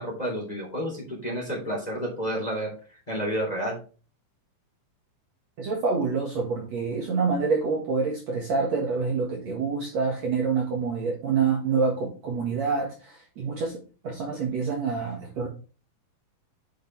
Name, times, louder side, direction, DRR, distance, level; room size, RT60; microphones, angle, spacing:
voice 1, 0.0-2.7 3.1-3.8, equal, 10° left, -1 dB, 3.0 m, -30 dB
voice 2, 5.6-15.5, right 5 dB, 55° right, -1 dB, 2.4 m, -27 dB
8.3 x 6.4 x 3.2 m, 0.35 s
omnidirectional pair, 4.3 m